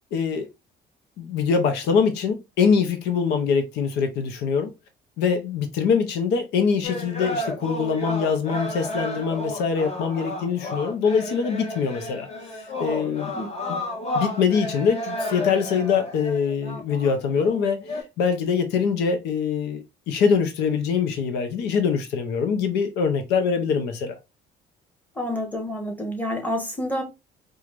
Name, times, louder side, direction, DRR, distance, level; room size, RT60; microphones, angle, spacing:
voice 1, 0.1-0.5 1.2-4.7 5.2-12.3 12.5-13.3 13.7-13.8 14.1-24.2, left 6 dB, 85° left, 0.7 m, -23 dB
sound 1, 6.8-18.0, left 1 dB, 40° left, 1.2 m, -32 dB
voice 2, 25.1-27.0, left 1 dB, 10° left, 1.2 m, -28 dB
4.6 x 2.4 x 2.5 m
cardioid pair, 110°, 17 cm